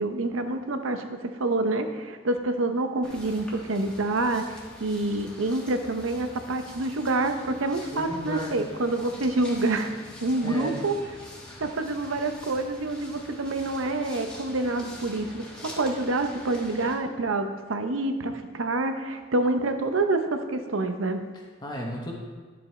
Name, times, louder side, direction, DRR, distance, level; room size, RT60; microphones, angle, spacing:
voice 1, 0.0-9.9 10.2-11.0 11.6-15.4 15.8-21.2, right 2 dB, 80° right, 7 dB, 0.8 m, -27 dB
sound 1, 3.0-17.0, left 1 dB, 5° left, 1.5 m, -45 dB
voice 2, 7.9-8.6 10.4-10.7 21.3-22.1, equal, 20° left, -2 dB, 0.9 m, -34 dB
11.0 x 7.8 x 3.2 m, 1.5 s
head